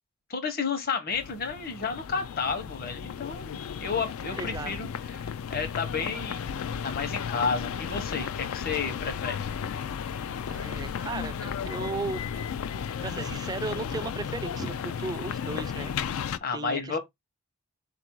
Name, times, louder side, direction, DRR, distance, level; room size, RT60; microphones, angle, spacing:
voice 1, 0.3-6.4 6.8-9.4 16.4-17.0, left 5 dB, 45° left, 0.9 m, -31 dB
sound 1, 1.1-16.4, left 7 dB, 75° left, 0.3 m, -34 dB
voice 2, 4.3-4.7 10.5-12.5 12.8-15.9 16.5-17.0, right 3 dB, 20° right, 0.3 m, -36 dB
3.8 x 2.6 x 4.5 m
head